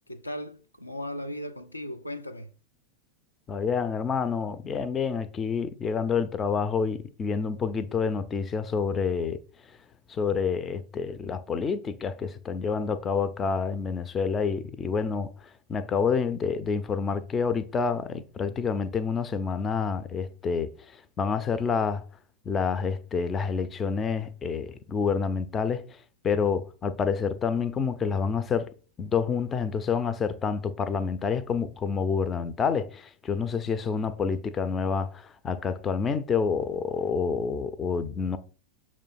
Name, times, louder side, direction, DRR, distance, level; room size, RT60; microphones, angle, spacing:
voice 1, 0.1-2.5, left 1 dB, 85° left, 0.7 m, -37 dB
voice 2, 3.5-9.4 9.7-9.8 10.1-22.0 22.5-26.0 26.2-38.4, left 5 dB, 20° left, 0.5 m, -28 dB
6.7 x 3.1 x 5.7 m
figure-of-eight pair, 90°, 0 cm